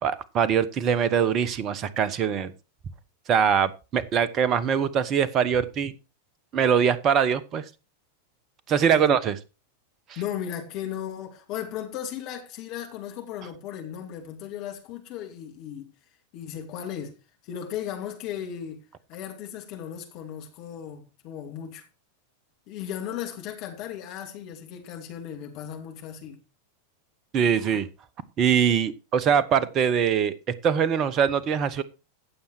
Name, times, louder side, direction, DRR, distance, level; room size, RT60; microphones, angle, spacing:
voice 1, 0.0-2.5 3.3-5.9 6.5-7.6 8.7-9.3 27.3-27.9 28.4-30.3 30.6-31.8, right 7 dB, 30° right, 1.1 m, -22 dB
voice 2, 10.2-15.9 16.3-17.2 17.4-18.8 19.1-21.9 22.7-26.4, left 9 dB, 40° left, 2.6 m, -36 dB
15.5 x 7.2 x 4.5 m
figure-of-eight pair, 90°, 0 cm